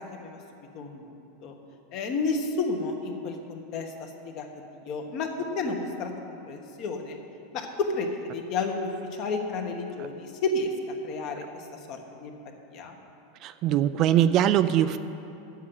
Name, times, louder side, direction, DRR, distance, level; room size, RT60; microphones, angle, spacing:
voice 1, 1.9-3.9 4.3-4.4 4.8-5.3 5.5-7.2 7.5-10.7 11.0-11.4 11.9-12.3 12.7-12.9, left 3 dB, 45° left, 3 dB, 1.3 m, -31 dB
voice 2, 13.4-15.0, right 11 dB, 40° right, 12 dB, 0.3 m, -22 dB
9.9 x 7.4 x 7.9 m, 2.8 s
supercardioid pair, 150°, 0 cm